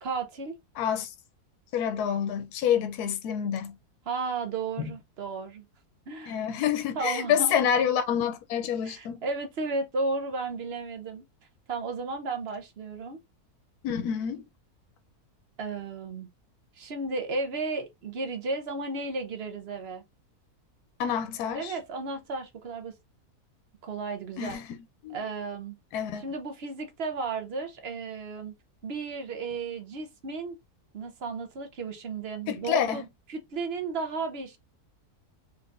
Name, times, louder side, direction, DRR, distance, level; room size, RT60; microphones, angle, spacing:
voice 1, 0.0-0.5 4.1-5.6 6.1-6.5 6.9-7.5 8.8-11.2 11.7-13.2 15.6-16.3 16.8-20.0 21.5-22.9 23.8-24.6 25.1-25.8 26.2-28.5 28.8-30.6 30.9-34.6, right 3 dB, 50° right, 0.8 m, -34 dB
voice 2, 0.8-1.1 1.7-3.8 4.8-4.9 6.3-9.2 13.8-14.4 21.0-21.7 24.4-24.7 25.0-25.2 25.9-26.2 32.5-33.0, left 8 dB, 80° left, 1.2 m, -27 dB
3.9 x 3.3 x 2.4 m
omnidirectional pair, 1.7 m